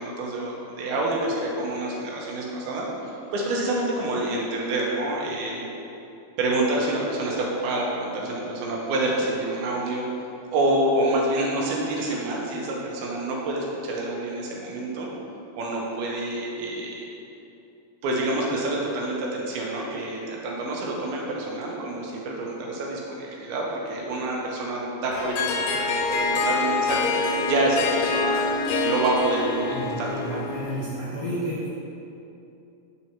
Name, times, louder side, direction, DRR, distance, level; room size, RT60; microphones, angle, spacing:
voice 1, 0.0-5.7 6.4-10.1 10.5-15.1 15.5-17.1 18.0-27.1 27.4-28.5 28.8-30.5, right 1 dB, 85° right, -2 dB, 3.0 m, -27 dB
Harp, 25.1-30.9, left 3 dB, 80° left, 2.0 m, -26 dB
voice 2, 29.7-31.7, right 1 dB, 45° left, -10 dB, 1.4 m, -31 dB
9.0 x 4.5 x 4.4 m, 2.8 s
omnidirectional pair, 4.2 m